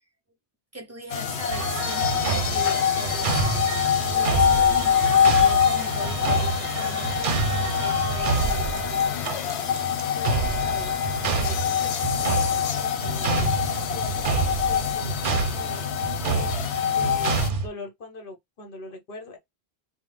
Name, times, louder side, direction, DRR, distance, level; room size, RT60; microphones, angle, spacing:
voice 1, 0.7-3.8 4.1-9.1, right 1 dB, 25° right, 0.3 m, -39 dB
sound 1, 1.1-17.5, left 8 dB, 85° left, 0.9 m, -25 dB
sound 2, 1.5-17.7, right 5 dB, 60° right, 0.7 m, -28 dB
voice 2, 10.1-11.0 11.3-11.6 12.0-15.1 15.5-15.9 16.2-16.5 16.9-17.3 17.6-19.4, left 2 dB, 60° left, 1.0 m, -41 dB
3.5 x 2.0 x 3.1 m
omnidirectional pair, 1.1 m